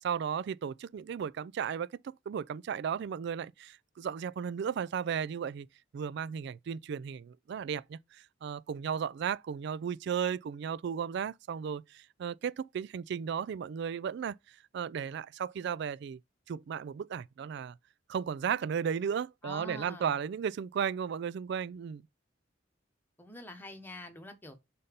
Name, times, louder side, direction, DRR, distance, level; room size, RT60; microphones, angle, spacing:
voice 1, 0.0-5.7 5.9-14.3 14.7-16.2 16.5-17.7 18.1-22.0, right 7 dB, 60° right, 0.3 m, -35 dB
voice 2, 19.4-20.2 23.2-24.6, left 1 dB, 10° left, 1.2 m, -45 dB
5.4 x 4.2 x 5.1 m
head